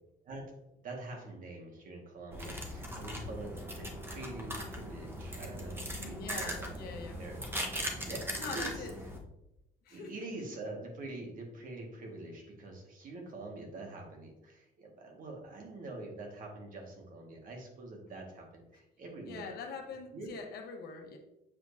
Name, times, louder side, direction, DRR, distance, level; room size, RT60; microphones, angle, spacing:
voice 1, 0.8-6.7 7.2-7.4 8.1-8.9 9.9-19.5 20.1-20.4, right 2 dB, 55° right, 0 dB, 1.8 m, -45 dB
sound 1, 2.3-9.2, equal, 15° right, 1.0 m, -39 dB
voice 2, 6.0-7.2 8.4-8.9 9.8-10.2 19.2-21.2, left 5 dB, 65° left, 3 dB, 1.1 m, -43 dB
7.6 x 4.6 x 2.7 m, 0.88 s
cardioid pair, 110°, 17 cm